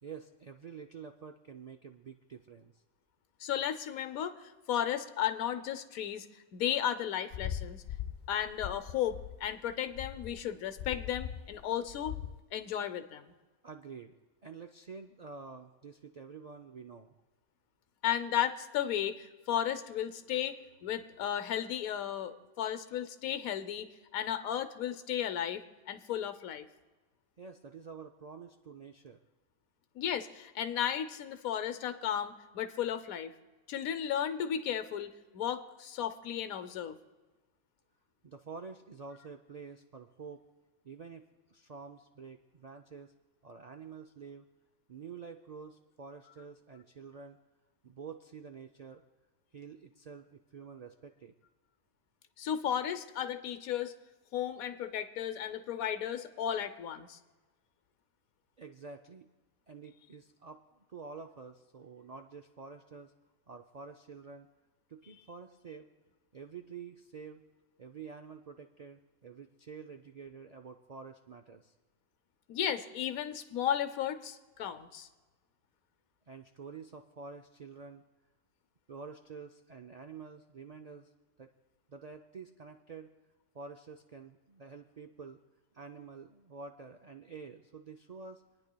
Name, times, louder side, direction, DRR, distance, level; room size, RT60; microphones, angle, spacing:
voice 1, 0.0-2.7 13.6-14.2 14.4-17.1 27.4-29.2 38.2-40.4 40.8-43.1 43.4-44.5 44.9-47.4 47.8-49.0 49.5-51.3 58.6-59.3 59.7-63.1 63.5-64.5 64.9-65.9 66.3-67.5 67.8-71.7 76.3-78.0 78.9-81.1 81.4-81.5 81.9-83.1 83.5-85.4 85.7-88.4, right 5 dB, 85° right, 5 dB, 0.3 m, -48 dB
voice 2, 3.4-4.4 4.7-6.3 6.5-7.8 8.3-12.1 12.5-13.2 18.0-26.6 29.9-33.3 33.7-37.0 52.4-53.9 54.3-57.2 72.5-75.1, left 10 dB, 90° left, 11 dB, 1.2 m, -34 dB
sound 1, 7.3-12.4, left 10 dB, 60° left, 0.6 m, -41 dB
28.5 x 9.8 x 2.2 m, 1.2 s
omnidirectional pair, 1.4 m